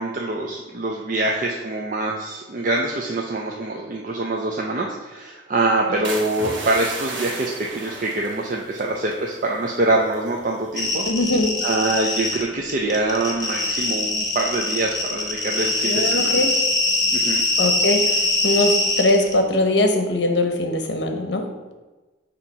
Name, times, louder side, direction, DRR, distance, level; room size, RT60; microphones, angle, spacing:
voice 1, 0.0-11.0 11.6-16.4 17.1-17.4, right 2 dB, 45° right, -1 dB, 0.5 m, -24 dB
sound 1, 6.0-9.8 10.0-10.4 10.9-11.2, right 2 dB, 80° right, 1.1 m, -34 dB
sound 2, 10.8-12.4 12.7-19.3, left 2 dB, 20° left, 0.9 m, -22 dB
voice 2, 11.1-11.5 15.8-16.6 17.6-21.5, left 1 dB, 60° left, 5 dB, 0.8 m, -21 dB
7.1 x 2.9 x 5.4 m, 1.2 s
head